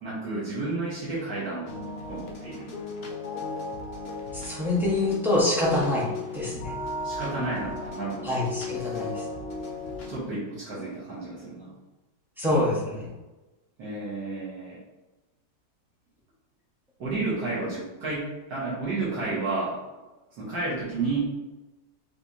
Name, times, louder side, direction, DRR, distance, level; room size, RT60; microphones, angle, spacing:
voice 1, 0.0-1.8 2.1-2.7 7.0-8.4 8.8-9.1 10.1-11.7 13.8-14.8 17.0-19.8 20.4-21.2, right 3 dB, 65° right, -7 dB, 1.9 m, -31 dB
sound 1, 1.7-10.2, left 2 dB, 65° left, 0.6 m, -36 dB
voice 2, 4.3-6.8 8.2-9.2 12.4-13.1, left 2 dB, ahead, -6 dB, 0.8 m, -26 dB
5.8 x 3.2 x 2.8 m, 1.1 s
omnidirectional pair, 2.0 m